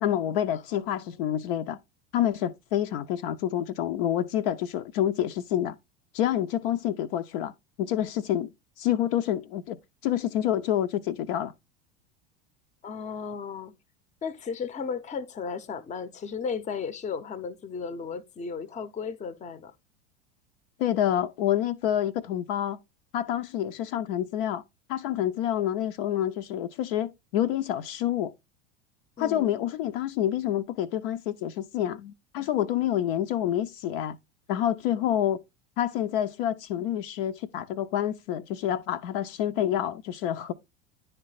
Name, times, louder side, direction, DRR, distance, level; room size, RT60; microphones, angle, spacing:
voice 1, 0.0-1.8 2.1-5.8 6.1-7.5 7.8-8.5 8.8-9.8 10.0-11.5 20.8-22.8 23.1-24.6 24.9-28.3 29.2-34.2 34.5-35.4 35.8-40.5, left 11 dB, 60° left, 0.6 m, -28 dB
voice 2, 0.7-1.2 12.8-13.8 14.2-19.7 29.2-29.6, left 5 dB, 20° left, 0.7 m, -35 dB
9.8 x 3.3 x 3.9 m
hypercardioid pair, 85°, 32 cm